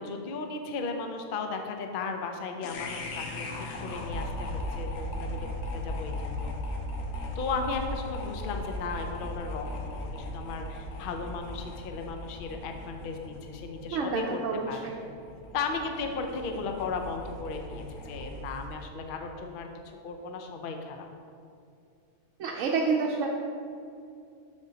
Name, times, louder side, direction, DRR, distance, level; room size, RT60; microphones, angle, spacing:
voice 1, 0.0-5.5 5.7-6.5 7.4-14.4 14.7-14.9 15.5-19.7 20.0-21.0, left 4 dB, 55° left, 4 dB, 0.6 m, -36 dB
sound 1, 2.6-18.8, left 1 dB, 85° left, 1.3 m, -38 dB
voice 2, 13.9-15.0 22.4-23.3, right 4 dB, 65° right, -1 dB, 0.9 m, -29 dB
8.0 x 6.7 x 2.8 m, 2.5 s
omnidirectional pair, 1.5 m